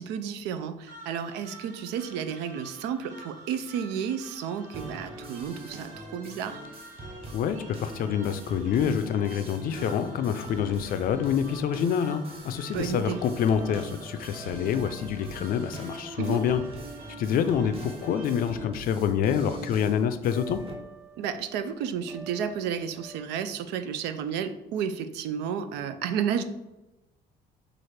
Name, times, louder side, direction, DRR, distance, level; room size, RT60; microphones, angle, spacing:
voice 1, 0.0-6.6 12.7-13.2 16.2-16.4 21.2-26.4, right 8 dB, 90° right, 10 dB, 0.4 m, -32 dB
sound 1, 0.9-18.6, right 2 dB, 50° right, 1.1 m, -49 dB
sound 2, 4.7-20.7, right 2 dB, 35° right, 0.8 m, -43 dB
voice 2, 7.3-16.6 17.2-20.6, left 8 dB, 60° left, 10 dB, 0.4 m, -27 dB
sound 3, 12.7-23.3, right 3 dB, 15° right, 0.4 m, -50 dB
5.7 x 2.5 x 3.2 m, 1.0 s
cardioid pair, 110°, 17 cm